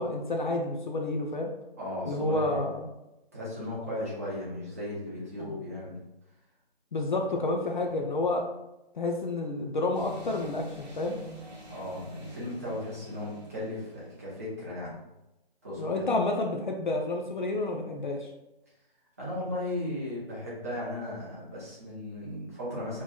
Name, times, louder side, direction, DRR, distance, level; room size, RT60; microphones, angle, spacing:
voice 1, 0.0-1.5 2.1-2.9 5.4-5.6 6.9-8.5 8.9-11.2 15.8-18.3, left 2 dB, 50° left, 2 dB, 0.5 m, -30 dB
voice 2, 1.8-2.6 3.3-6.0 11.7-15.0 15.6-16.1 19.2-23.0, left 1 dB, 15° right, -8 dB, 0.6 m, -36 dB
sound 1, 9.9-14.3, equal, 45° right, 0.9 m, -45 dB
4.4 x 2.9 x 2.2 m, 0.94 s
hypercardioid pair, 165°, 30 cm